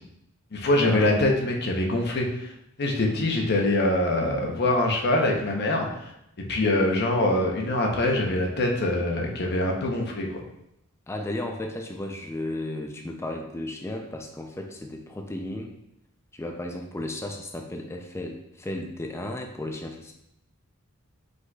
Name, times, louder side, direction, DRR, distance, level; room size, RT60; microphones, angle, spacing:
voice 1, 0.5-2.5 2.8-6.1 6.4-10.4, left 1 dB, 50° left, 1 dB, 0.8 m, -24 dB
voice 2, 11.1-15.7 16.3-20.1, left 1 dB, 10° left, 2 dB, 0.4 m, -34 dB
5.0 x 3.9 x 2.3 m, 0.79 s
head